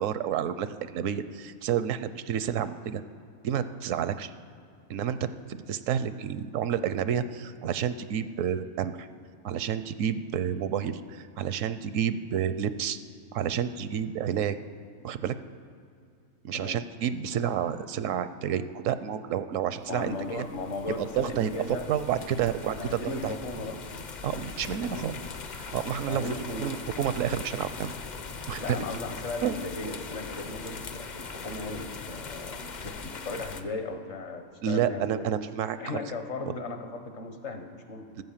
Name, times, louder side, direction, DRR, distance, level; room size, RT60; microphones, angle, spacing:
voice 1, 0.0-3.0 3.4-4.3 4.9-9.1 9.4-13.0 13.3-14.6 15.0-15.3 16.4-20.4 21.0-21.5 21.9-23.3 24.2-25.2 25.6-26.2 26.6-27.9 28.5-28.8 29.4-29.6 34.6-36.0 36.5-36.6 38.2-38.3, right 9 dB, 80° right, 13 dB, 1.0 m, -30 dB
voice 2, 19.9-21.9 22.7-23.8 24.6-25.1 26.1-26.7 28.6-35.3 35.8-38.1, left 2 dB, 60° left, 6 dB, 1.4 m, -36 dB
sound 1, 19.9-33.6, left 4 dB, 45° left, 0.7 m, -41 dB
13.5 x 7.9 x 7.3 m, 2.3 s
omnidirectional pair, 1.4 m